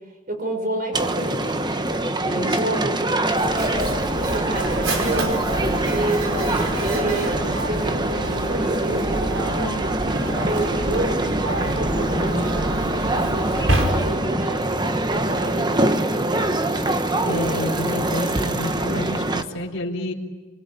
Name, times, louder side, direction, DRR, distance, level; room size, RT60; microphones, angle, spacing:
voice 1, 0.3-1.5 2.2-3.0 3.5-7.3 7.7-10.0 10.4-11.2 11.6-16.5, right 1 dB, 45° right, 5 dB, 6.1 m, -30 dB
sound 1, 0.9-19.4, right 1 dB, 20° right, 1.1 m, -24 dB
Mechanisms, 3.2-14.4, right 1 dB, 85° right, 4.8 m, -28 dB
voice 2, 17.2-20.1, left 1 dB, 75° left, -3 dB, 3.7 m, -29 dB
24.5 x 24.0 x 9.8 m, 1.4 s
head